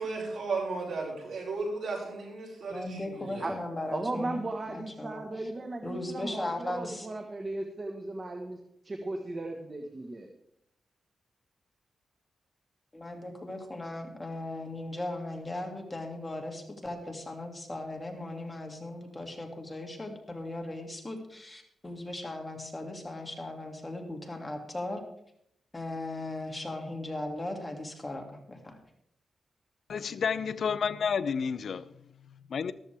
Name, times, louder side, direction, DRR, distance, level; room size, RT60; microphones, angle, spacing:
voice 1, 0.0-3.5, right 3 dB, 70° right, -3 dB, 5.6 m, -35 dB
voice 2, 2.7-4.4 4.7-5.2 5.8-7.1 12.9-25.0 25.7-28.8, left 2 dB, 20° left, 2 dB, 2.4 m, -38 dB
voice 3, 3.9-8.6 8.8-10.3, right 2 dB, 35° right, 3 dB, 1.3 m, -36 dB
voice 4, 29.9-31.9 32.5-32.7, left 6 dB, 65° left, 14 dB, 0.5 m, -30 dB
14.0 x 13.5 x 3.5 m, 0.75 s
cardioid pair, 90°, 0 cm